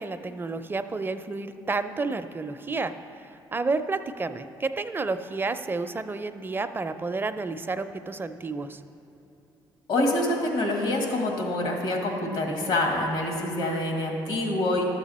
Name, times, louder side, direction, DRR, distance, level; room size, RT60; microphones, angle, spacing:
voice 1, 0.0-2.9 3.5-8.8, right 3 dB, 25° right, 10 dB, 0.4 m, -30 dB
voice 2, 9.9-14.8, left 1 dB, 85° left, 1 dB, 1.8 m, -26 dB
12.0 x 7.4 x 4.2 m, 2.9 s
cardioid pair, 80°, 9 cm